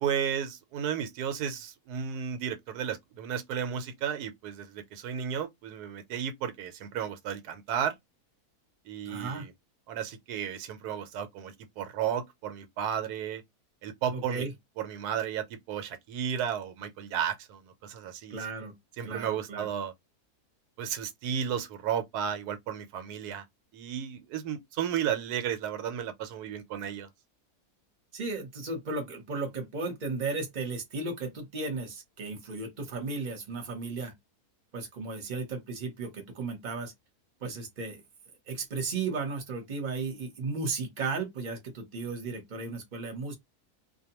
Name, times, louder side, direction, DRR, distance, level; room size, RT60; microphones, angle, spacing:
voice 1, 0.0-7.9 8.9-9.5 9.9-13.4 13.8-14.4 14.8-18.5 19.0-19.9 20.8-23.4 23.7-27.1, right 8 dB, 90° right, 1.1 m, -33 dB
voice 2, 9.0-9.5 14.1-14.5 18.3-18.7 19.0-19.7 28.1-34.1 34.7-36.9 37.4-38.0 38.5-43.3, right 3 dB, 35° right, 0.9 m, -35 dB
2.5 x 2.2 x 2.8 m
omnidirectional pair, 1.7 m